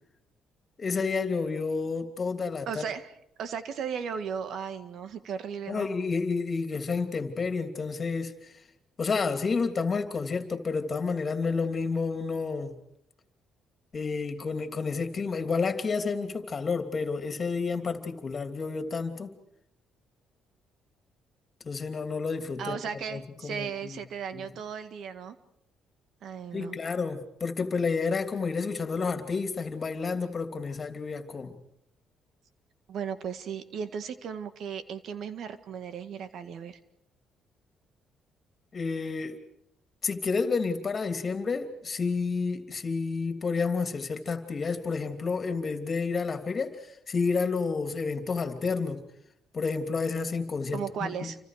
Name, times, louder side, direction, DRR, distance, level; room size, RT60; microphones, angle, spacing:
voice 1, 0.8-2.8 5.7-8.3 9.0-12.8 13.9-19.3 21.6-22.8 23.1-24.0 24.3-24.4 26.5-31.6 38.7-39.4 40.0-49.0 49.5-51.3, left 4 dB, 35° left, 7 dB, 2.9 m, -30 dB
voice 2, 2.7-3.1 3.4-5.9 22.6-25.4 26.2-26.8 32.9-36.8 50.7-51.4, right 7 dB, 65° right, 10 dB, 1.8 m, -36 dB
29.0 x 25.5 x 5.0 m, 0.78 s
cardioid pair, 90°, 0 cm